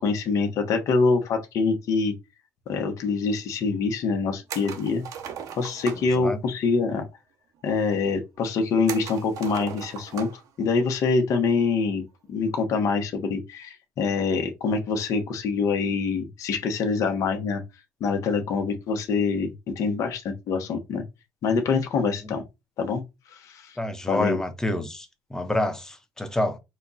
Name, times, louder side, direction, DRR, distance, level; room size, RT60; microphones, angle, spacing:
voice 1, 0.0-2.1 2.7-5.0 5.6-7.0 7.6-10.3 10.6-12.0 12.3-17.6 18.0-21.0 21.4-22.4 22.8-23.0 23.3-23.8 24.1-24.4, left 4 dB, 60° left, 1.2 m, -25 dB
sound 1, 4.5-6.1 8.9-10.5 10.8-10.9 12.5-12.8, right 8 dB, 65° right, 1.0 m, -38 dB
voice 2, 6.0-6.4 22.2-22.3 23.8-26.6, left 1 dB, 10° left, 0.9 m, -28 dB
4.4 x 2.4 x 4.1 m
cardioid pair, 95°, 6 cm